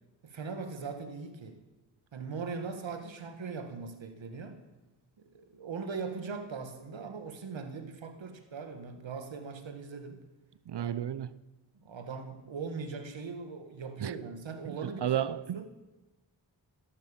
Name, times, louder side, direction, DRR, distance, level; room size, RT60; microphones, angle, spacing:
voice 1, 0.2-1.6 2.1-4.6 5.3-10.2 10.8-10.9 11.8-15.2 15.5-15.6, right 5 dB, 85° right, 2.0 m, -40 dB
voice 2, 10.7-11.3 14.0-14.1 14.7-15.6, right 10 dB, 65° right, 0.7 m, -33 dB
17.5 x 11.0 x 7.3 m
wide cardioid pair, 95°, 44 cm